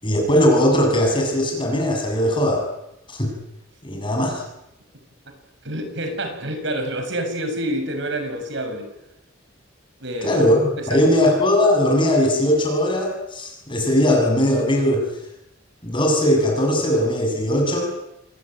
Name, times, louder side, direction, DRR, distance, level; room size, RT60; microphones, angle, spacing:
voice 1, 0.0-2.7 3.1-3.3 3.8-4.4 10.2-15.1 15.8-17.9, left 1 dB, 25° left, 1 dB, 7.4 m, -19 dB
voice 2, 5.6-8.9 10.0-10.4 10.8-11.1, right 1 dB, 65° right, 6 dB, 6.7 m, -27 dB
27.5 x 20.5 x 9.1 m, 0.86 s
head